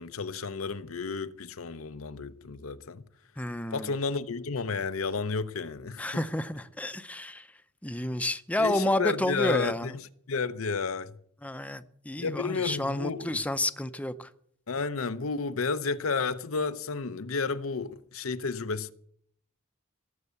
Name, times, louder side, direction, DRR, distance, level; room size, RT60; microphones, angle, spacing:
voice 1, 0.0-3.0 3.7-6.2 8.6-11.2 12.2-13.4 14.7-18.9, left 4 dB, 90° left, 0.8 m, -32 dB
voice 2, 3.4-3.9 6.0-7.5 7.8-9.9 11.4-14.3, left 1 dB, 5° left, 0.6 m, -30 dB
18.0 x 8.1 x 8.2 m
head